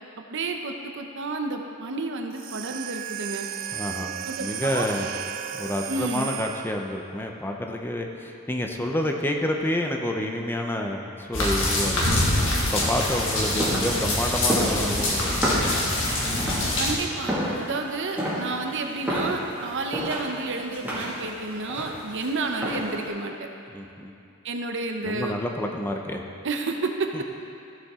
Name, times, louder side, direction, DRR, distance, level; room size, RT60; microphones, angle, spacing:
voice 1, 0.3-3.5 4.2-4.9 5.9-6.3 16.8-23.4 24.4-25.4 26.4-27.1, right 3 dB, 60° right, 4 dB, 0.8 m, -30 dB
sound 1, 2.3-7.1, right 10 dB, 45° right, 0.4 m, -34 dB
voice 2, 3.7-5.1 5.5-12.3 12.7-15.7 23.7-24.1 25.0-26.2 27.1-27.2, left 1 dB, 10° left, 2 dB, 0.6 m, -29 dB
sound 2, 11.3-16.9, left 1 dB, 65° left, 1.8 m, -25 dB
sound 3, 12.5-23.1, equal, 10° right, 2.0 m, -31 dB
14.5 x 7.0 x 3.7 m, 2.6 s
head